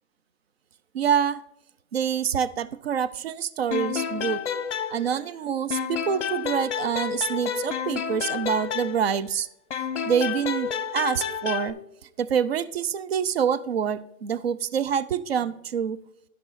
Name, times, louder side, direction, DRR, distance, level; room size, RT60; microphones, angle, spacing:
voice 1, 0.9-1.4 1.9-4.4 4.9-9.5 10.0-11.8 12.2-16.0, right 8 dB, 50° right, 16 dB, 0.4 m, -26 dB
sound 1, 3.7-5.4 5.7-9.3 9.7-11.7, left 7 dB, 60° left, 0.8 m, -30 dB
12.5 x 6.0 x 4.0 m, 0.80 s
hypercardioid pair, 170°, 41 cm